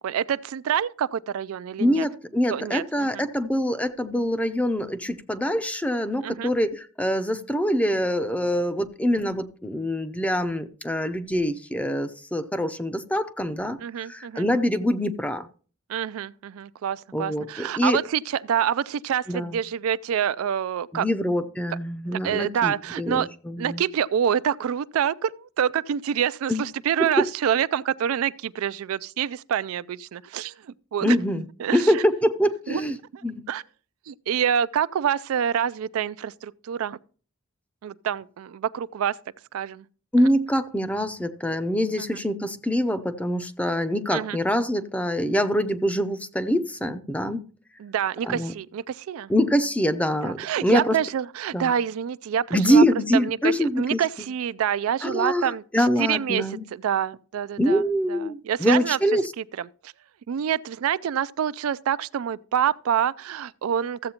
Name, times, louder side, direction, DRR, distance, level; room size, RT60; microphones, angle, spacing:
voice 1, 0.0-2.1 2.5-3.3 6.2-6.5 13.8-14.5 15.9-21.1 22.1-23.3 23.6-31.2 31.6-32.0 32.7-32.8 33.1-33.6 34.1-37.0 37.8-39.2 39.5-39.8 40.2-40.3 42.0-42.2 44.1-44.4 47.8-49.3 50.2-52.8 53.1-56.4 56.7-57.8 58.1-59.0 59.4-59.9 60.3-64.1, right 9 dB, 80° right, 0.3 m, -27 dB
voice 2, 1.8-15.5 17.1-18.0 19.3-19.6 20.9-23.8 26.5-26.6 31.0-31.5 31.7-33.0 33.2-33.4 40.1-47.4 48.2-48.5 49.3-51.0 51.5-51.7 52.5-54.0 55.0-56.7 57.6-59.3, equal, 5° left, 0.5 m, -24 dB
14.0 x 7.7 x 2.9 m
head